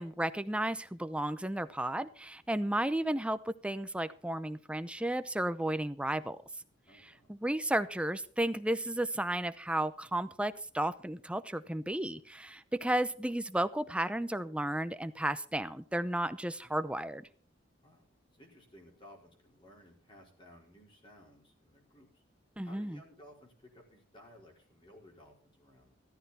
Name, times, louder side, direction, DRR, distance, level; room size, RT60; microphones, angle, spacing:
voice 1, 0.0-6.4 7.3-17.3 22.6-23.0, right 1 dB, 5° right, 12 dB, 0.7 m, -33 dB
voice 2, 6.9-7.3 17.8-22.2 22.6-25.9, left 1 dB, 25° left, -1 dB, 4.7 m, -58 dB
14.0 x 13.5 x 4.3 m, 0.43 s
head